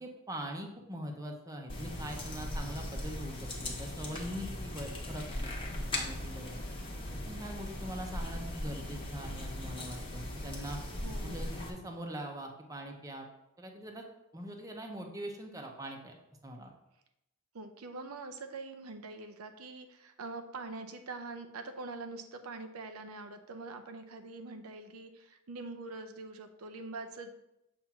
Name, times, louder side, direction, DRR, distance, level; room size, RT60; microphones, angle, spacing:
voice 1, 0.0-6.6 7.2-10.8 11.2-13.3 13.6-14.1 14.3-16.2 16.4-16.7, equal, 15° right, 2 dB, 0.7 m, -42 dB
sound 1, 1.7-11.7, left 1 dB, 25° left, 1.0 m, -39 dB
voice 2, 11.0-11.4 17.5-27.3, right 3 dB, 85° right, 6 dB, 0.6 m, -44 dB
7.2 x 2.6 x 5.7 m, 0.88 s
head